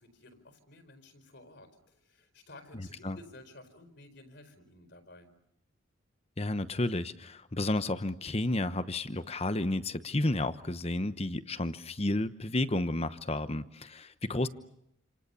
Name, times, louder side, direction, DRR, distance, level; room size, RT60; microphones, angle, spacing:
voice 1, 0.0-5.3, left 2 dB, 55° left, 10 dB, 4.6 m, -54 dB
voice 2, 2.8-3.2 6.4-14.5, left 2 dB, 30° left, 13 dB, 1.0 m, -32 dB
29.0 x 27.5 x 7.0 m, 0.77 s
head